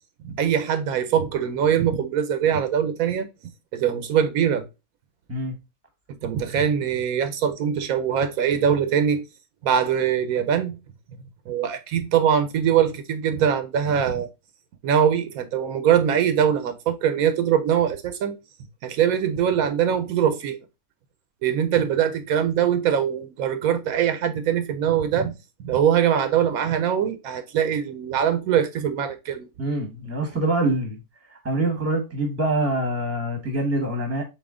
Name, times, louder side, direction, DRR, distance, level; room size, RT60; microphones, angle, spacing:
voice 1, 0.2-3.3 3.7-4.7 6.2-9.2 9.6-10.8 11.5-14.3 14.8-18.4 18.8-20.6 21.4-25.3 25.6-29.5, right 8 dB, 80° right, 1.1 m, -22 dB
voice 2, 29.6-31.0 31.3-34.2, right 2 dB, 10° right, 0.9 m, -25 dB
4.1 x 3.0 x 3.5 m
omnidirectional pair, 1.5 m